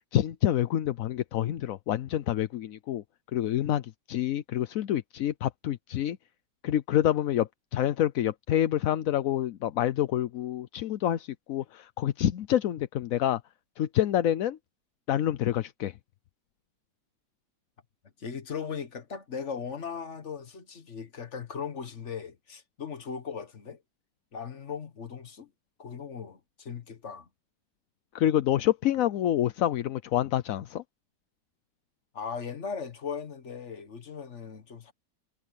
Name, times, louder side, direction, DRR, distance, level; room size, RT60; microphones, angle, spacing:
voice 1, 0.1-3.0 3.3-6.2 6.6-13.4 13.8-14.6 15.1-15.9 28.1-30.8, left 11 dB, 60° left, 0.9 m, -27 dB
voice 2, 18.2-23.8 24.3-25.5 25.8-27.3 32.1-34.9, left 6 dB, 40° left, 1.8 m, -38 dB
omnidirectional pair, 1.9 m